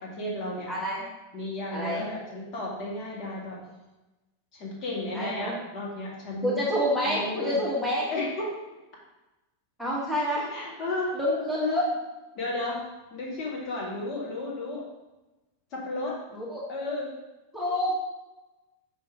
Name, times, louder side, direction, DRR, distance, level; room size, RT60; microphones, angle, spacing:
voice 1, 0.0-0.7 1.3-3.6 4.5-6.6 7.0-7.6 8.1-8.5 10.4-11.1 11.5-11.8 12.3-12.8 13.1-14.8 15.7-16.2 16.7-17.1, left 2 dB, 35° left, -4 dB, 2.0 m, -33 dB
voice 2, 0.7-1.0 1.7-2.1 5.1-5.5 6.4-8.1 9.8-10.5 11.2-11.9 16.3-16.6 17.5-18.0, equal, ahead, -6 dB, 1.5 m, -28 dB
5.4 x 5.2 x 3.6 m, 1.0 s
figure-of-eight pair, 90°, 0 cm